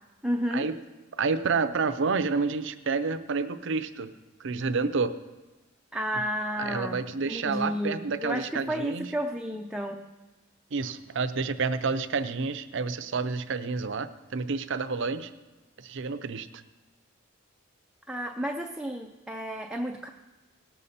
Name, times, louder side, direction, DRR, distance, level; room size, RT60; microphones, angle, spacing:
voice 1, 0.2-0.7 5.9-10.1 18.1-20.1, equal, 5° right, 2 dB, 0.5 m, -32 dB
voice 2, 1.1-4.1 4.4-5.2 6.6-9.1 10.7-15.3 15.8-16.5, right 4 dB, 65° right, 11 dB, 0.6 m, -29 dB
18.0 x 6.7 x 4.2 m, 1.2 s
head